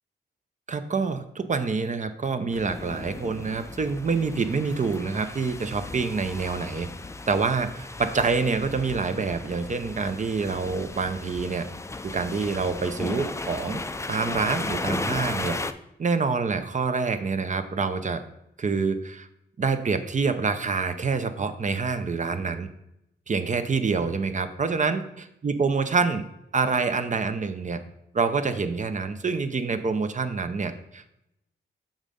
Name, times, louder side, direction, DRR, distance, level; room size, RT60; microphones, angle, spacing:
voice 1, 0.7-6.9 7.3-11.7 12.0-13.8 14.1-15.6 16.0-18.2 18.6-19.3 19.6-22.7 23.3-26.3 26.5-27.8 28.1-31.2, right 4 dB, 40° right, 9 dB, 0.6 m, -26 dB
sound 1, 2.5-15.7, left 2 dB, 15° left, 0.4 m, -35 dB
7.3 x 3.7 x 5.2 m, 0.82 s
cardioid pair, 85°, 19 cm